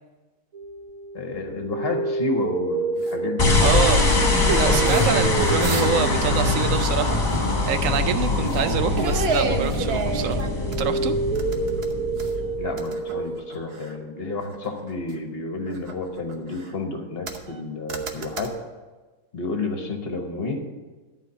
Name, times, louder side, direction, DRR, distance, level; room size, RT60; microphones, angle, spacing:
sound 1, 0.5-9.9 10.2-14.0, right 3 dB, 90° right, 1.5 m, -30 dB
voice 1, 1.1-4.0 8.3-8.5 12.6-18.5 19.3-20.6, left 3 dB, 45° left, 4 dB, 1.2 m, -31 dB
sound 2, 3.0-3.2 3.7-5.1 5.4-6.1 6.4-6.6 7.3-8.1 8.5-8.7 8.9-10.9 11.4-12.4 12.8-14.0 14.4-15.2 15.7-16.8 17.3-17.6 17.9-18.5, right 4 dB, 50° right, 1.1 m, -30 dB
sound 3, 3.4-12.8, left 3 dB, 30° left, 1.7 m, -23 dB
voice 2, 3.6-4.1 4.5-7.2 7.7-10.4 10.8-11.1, right 8 dB, 70° right, 10 dB, 0.9 m, -25 dB
11.5 x 4.7 x 8.0 m, 1.3 s
omnidirectional pair, 1.5 m